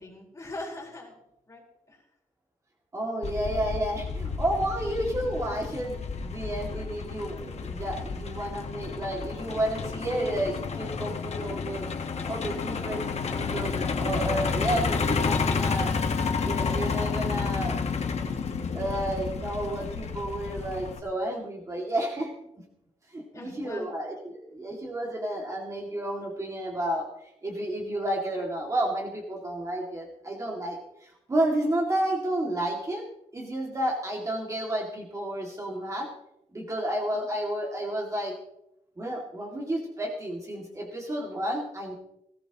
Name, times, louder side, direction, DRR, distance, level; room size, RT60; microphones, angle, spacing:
voice 1, 0.0-2.1 23.3-23.9 37.1-37.3, left 2 dB, 25° left, -2 dB, 4.5 m, -42 dB
voice 2, 2.9-11.9 12.3-15.9 16.4-17.8 18.7-22.3 23.1-27.1 27.4-33.0 33.3-36.1 36.5-38.4 39.0-41.9, right 1 dB, 25° right, -1 dB, 2.3 m, -31 dB
Truck, 3.2-21.0, left 5 dB, 55° left, 1.5 m, -31 dB
19.0 x 16.5 x 3.0 m, 0.82 s
wide cardioid pair, 145°, 13 cm